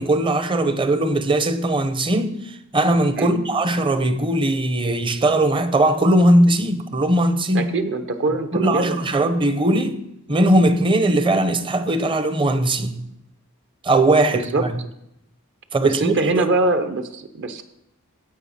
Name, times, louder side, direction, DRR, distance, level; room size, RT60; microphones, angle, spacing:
voice 1, 0.0-7.7 8.5-10.0 10.3-13.0 13.8-14.7 15.7-16.4, right 1 dB, 25° right, 0.6 m, -19 dB
voice 2, 7.5-9.0 14.3-14.6 15.8-17.6, right 2 dB, 55° right, 0.8 m, -23 dB
16.0 x 5.5 x 4.1 m
head